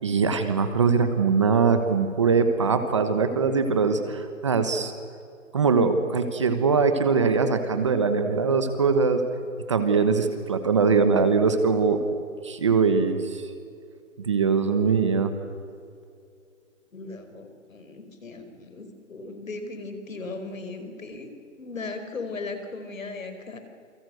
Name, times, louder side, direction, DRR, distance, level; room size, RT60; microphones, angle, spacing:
voice 1, 0.0-4.9 5.5-9.2 9.7-12.0 12.4-13.5 14.2-15.3, right 5 dB, 25° right, 8 dB, 1.2 m, -22 dB
voice 2, 16.9-21.3 21.6-23.6, left 3 dB, 75° left, 8 dB, 5.1 m, -37 dB
28.5 x 23.0 x 7.9 m, 2.4 s
hypercardioid pair, 175°, 40 cm